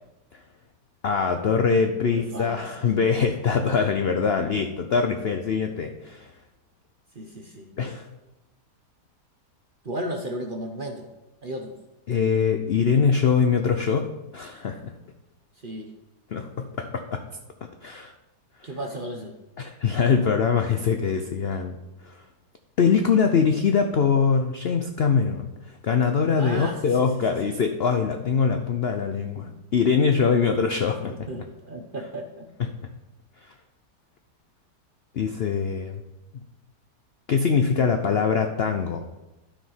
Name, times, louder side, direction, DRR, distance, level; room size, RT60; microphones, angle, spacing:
voice 1, 1.0-6.3 7.8-8.1 12.1-14.1 14.3-14.9 16.3-17.2 17.8-18.1 18.6-18.7 19.6-21.8 22.0-22.2 22.8-31.3 32.6-32.7 33.4-33.5 35.1-36.0 37.3-39.1, left 6 dB, 65° left, 6 dB, 0.6 m, -23 dB
voice 2, 2.0-2.6 7.1-7.7 9.8-11.1 11.4-11.7 15.6-15.9 18.6-19.3 26.4-27.6 29.5-29.6 31.3-32.4, right 1 dB, 45° right, 4 dB, 0.7 m, -34 dB
12.5 x 5.1 x 5.6 m, 1.0 s
omnidirectional pair, 1.8 m